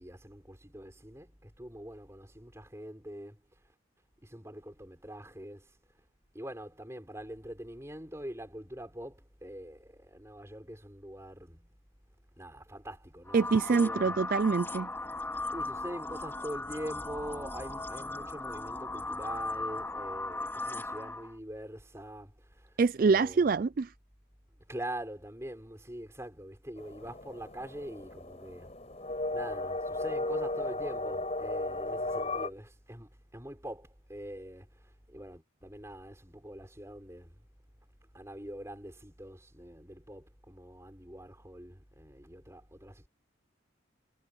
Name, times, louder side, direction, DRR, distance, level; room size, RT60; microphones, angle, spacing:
voice 1, 0.0-3.4 4.2-5.7 6.3-11.7 12.4-14.2 15.5-22.7 23.0-23.6 24.7-28.8 29.3-34.7 35.1-37.4 38.1-43.1, right 1 dB, 15° right, 5.4 m, -44 dB
sound 1, 13.3-21.3, left 2 dB, 10° left, 3.9 m, -37 dB
voice 2, 13.3-14.9 22.8-23.9, right 4 dB, 45° right, 0.3 m, -25 dB
sound 2, 26.8-32.5, left 2 dB, 35° left, 4.6 m, -35 dB
head